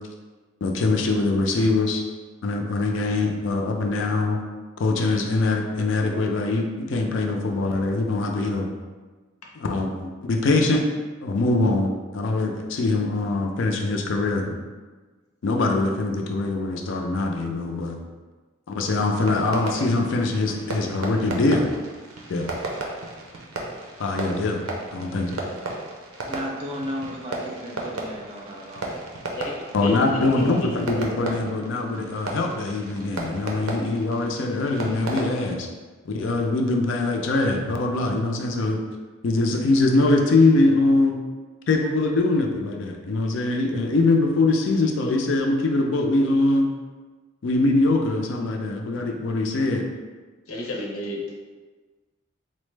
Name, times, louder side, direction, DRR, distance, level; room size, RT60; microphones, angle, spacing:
voice 1, 0.6-2.0 2.4-4.4 4.8-8.7 9.5-10.8 11.2-14.5 15.4-18.0 18.7-21.7 22.3-22.5 24.0-24.6 24.9-25.4 29.7-35.7 36.1-38.8 39.2-41.2 41.7-46.7 47.4-49.8, left 2 dB, 60° left, 3 dB, 0.4 m, -23 dB
Fireworks, 19.0-35.6, right 2 dB, 85° right, 0.6 m, -35 dB
voice 2, 26.3-28.9, equal, 25° right, -1 dB, 0.4 m, -34 dB
voice 3, 29.4-31.0 50.5-51.3, left 1 dB, 90° left, -2 dB, 0.7 m, -31 dB
3.9 x 2.1 x 3.2 m, 1.3 s
head